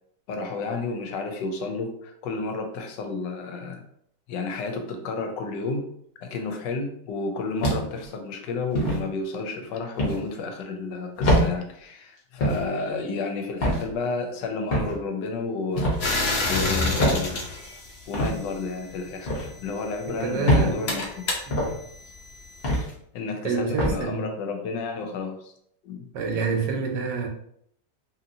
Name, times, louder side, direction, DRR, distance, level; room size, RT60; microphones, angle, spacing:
voice 1, 0.3-3.8 4.3-5.8 6.2-17.4 18.1-21.3 23.1-25.5 25.8-26.1, left 3 dB, 90° left, 1.3 m, -31 dB
sound 1, 7.6-8.1 8.7-9.0 10.0-10.2 11.2-11.5 12.4-12.6 13.6-13.9 14.7-15.0 15.8-16.0 17.0-17.2 18.1-18.3 19.3-19.5 20.5-20.7 21.5-21.7 22.6-22.9 23.8-24.0, equal, 45° left, 0.8 m, -23 dB
sound 2, 16.0-18.7 19.6-22.8, left 2 dB, 70° left, 0.6 m, -30 dB
voice 2, 20.1-21.0 21.5-21.8 23.4-24.2 26.1-27.3, right 4 dB, 85° right, 1.3 m, -28 dB
2.8 x 2.8 x 2.6 m
omnidirectional pair, 1.9 m